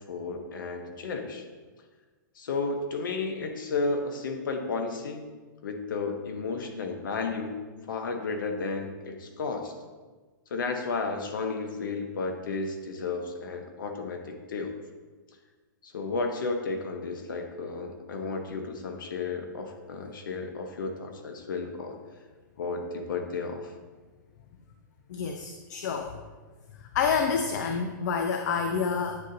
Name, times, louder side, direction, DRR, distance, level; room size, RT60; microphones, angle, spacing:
voice 1, 0.1-1.4 2.4-5.3 5.6-7.6 7.9-9.7 10.5-14.7 15.8-22.0 22.6-23.7, left 4 dB, 80° left, 5 dB, 0.9 m, -33 dB
voice 2, 25.1-26.1 26.9-29.2, left 6 dB, 60° left, 5 dB, 0.5 m, -28 dB
9.5 x 3.8 x 2.7 m, 1.3 s
hypercardioid pair, 145°, 11 cm